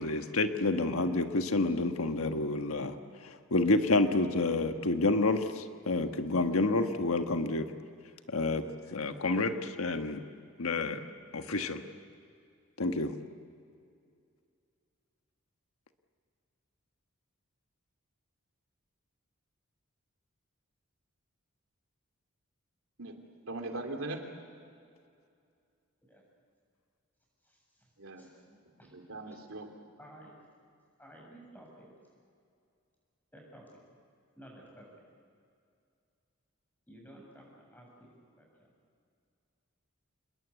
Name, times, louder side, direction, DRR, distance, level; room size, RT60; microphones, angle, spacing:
voice 1, 0.0-3.0 3.2-7.7 8.3-8.7 8.9-10.2 10.6-11.0 11.3-11.8 12.8-13.1, left 2 dB, 90° left, 7 dB, 1.4 m, -29 dB
voice 2, 23.0-24.3 28.0-28.3 28.8-29.7, right 2 dB, 80° right, 4 dB, 3.0 m, -40 dB
voice 3, 27.4-27.9 28.2-28.9 29.2-29.4 30.0-30.3 31.0-31.9 33.3-33.6 34.4-34.9 36.9-38.1 38.3-38.7, right 1 dB, 10° left, -1 dB, 7.2 m, -54 dB
27.5 x 21.0 x 8.3 m, 2.4 s
head